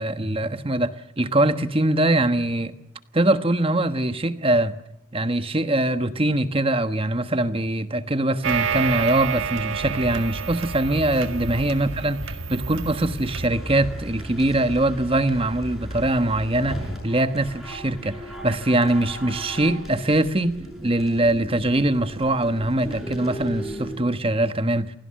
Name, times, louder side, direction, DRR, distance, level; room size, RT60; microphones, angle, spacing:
voice 1, 0.0-2.7 3.1-4.7 5.1-20.6 20.8-24.9, right 1 dB, 25° right, 1.3 m, -22 dB
sound 1, 8.4-13.5, right 5 dB, 65° right, 1.8 m, -29 dB
sound 2, 13.5-24.0, equal, ahead, 7.8 m, -36 dB
28.0 x 17.5 x 7.6 m
head